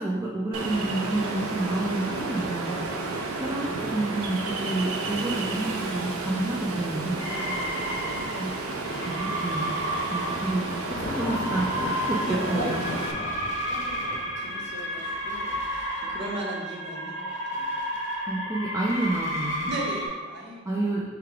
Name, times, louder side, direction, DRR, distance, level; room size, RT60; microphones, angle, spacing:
voice 1, 0.0-2.7 3.3-7.2 8.4-9.7 10.1-12.8 18.3-19.7 20.7-21.0, right 2 dB, 15° right, -4 dB, 0.3 m, -29 dB
Ocean, 0.5-13.1, right 3 dB, 85° right, 0.5 m, -32 dB
voice 2, 2.7-3.4 7.2-7.9 12.2-17.7 19.6-20.9, right 1 dB, 55° right, -3 dB, 0.8 m, -38 dB
sound 1, 7.2-20.1, equal, 35° left, 1.0 m, -32 dB
Thunder, 8.8-15.2, left 1 dB, 70° left, 0.7 m, -39 dB
3.5 x 3.3 x 3.3 m, 1.3 s
head